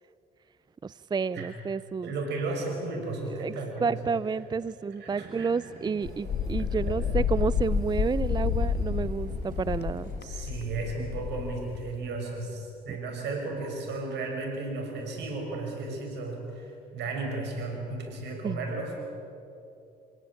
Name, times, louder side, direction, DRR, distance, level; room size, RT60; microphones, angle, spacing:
voice 1, 0.8-2.1 3.3-3.5 3.8-10.5 12.9-13.0 18.4-18.7, right 5 dB, 25° right, 18 dB, 0.5 m, -30 dB
voice 2, 2.0-4.0 5.0-5.5 10.2-18.9, right 3 dB, 70° right, 2 dB, 6.3 m, -34 dB
sound 1, 5.1-10.2, right 3 dB, 50° right, 5.5 m, -47 dB
Wind, 6.0-12.0, left 6 dB, 65° left, 1.7 m, -30 dB
26.5 x 17.5 x 8.7 m, 2.8 s
supercardioid pair, 60°, 18 cm